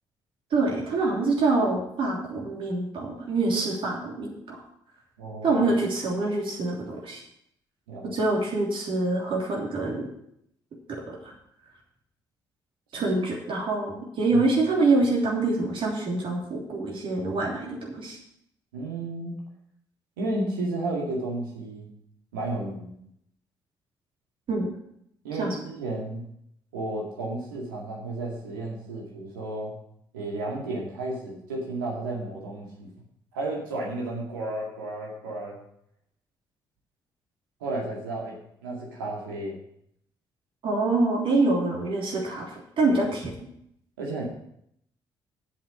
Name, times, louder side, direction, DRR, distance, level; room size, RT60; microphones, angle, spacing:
voice 1, 0.5-4.6 5.4-7.2 8.1-10.1 10.9-11.3 12.9-18.2 24.5-24.7 25.4-25.5 40.6-43.3, right 2 dB, 50° right, -2 dB, 3.0 m, -25 dB
voice 2, 5.2-5.6 7.9-8.1 13.1-13.2 14.3-14.4 18.7-19.4 20.2-21.9 22.3-23.0 25.2-26.2 26.7-29.8 30.1-32.9 33.3-35.6 37.6-38.4 38.6-39.6 44.0-44.2, right 2 dB, 75° right, -2 dB, 2.2 m, -32 dB
8.4 x 7.3 x 6.4 m, 0.73 s
figure-of-eight pair, 40°, 11 cm